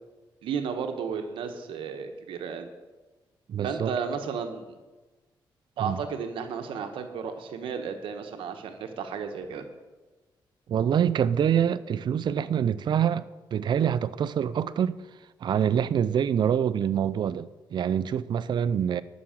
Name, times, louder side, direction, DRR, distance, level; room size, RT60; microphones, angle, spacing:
voice 1, 0.4-2.7 3.6-4.8 5.8-9.6, right 6 dB, 90° right, 1.3 m, -33 dB
voice 2, 3.5-3.9 5.8-6.0 10.7-13.3 13.5-15.0 15.4-19.0, right 8 dB, 60° right, 0.5 m, -25 dB
11.5 x 6.3 x 7.3 m
cardioid pair, 95°, 9 cm